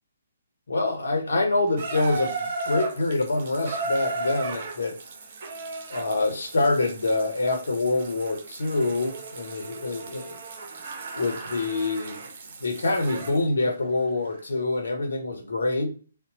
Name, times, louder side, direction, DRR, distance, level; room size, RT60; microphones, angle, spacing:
voice 1, 0.7-5.0 5.9-10.4 11.1-12.2 12.6-15.9, left 2 dB, 65° left, 3 dB, 0.9 m, -26 dB
Water tap faucet / Bathtub (filling or washing), 1.8-13.4 14.3-14.4, right 3 dB, 45° right, 0.5 m, -35 dB
2.9 x 2.0 x 4.0 m, 0.38 s
figure-of-eight pair, 130°, 0 cm